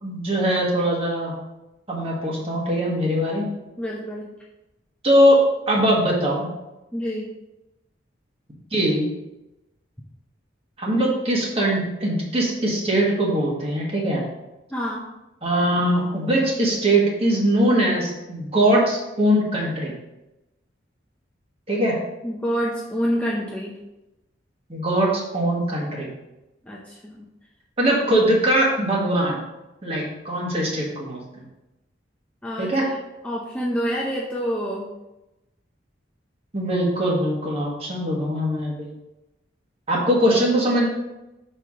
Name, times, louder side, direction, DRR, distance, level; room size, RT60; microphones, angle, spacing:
voice 1, 0.0-1.3 1.9-3.4 5.0-6.4 8.7-9.1 10.8-14.2 15.4-19.9 21.7-21.9 24.7-26.1 27.8-29.4 29.8-31.4 32.6-32.8 36.5-38.9 39.9-40.9, right 1 dB, 30° right, -3 dB, 1.4 m, -21 dB
voice 2, 3.8-4.3 6.9-7.3 14.7-15.0 22.2-23.7 26.6-27.3 32.4-32.9 33.2-34.9, equal, 5° left, -5 dB, 0.6 m, -27 dB
6.6 x 4.6 x 3.6 m, 0.97 s
head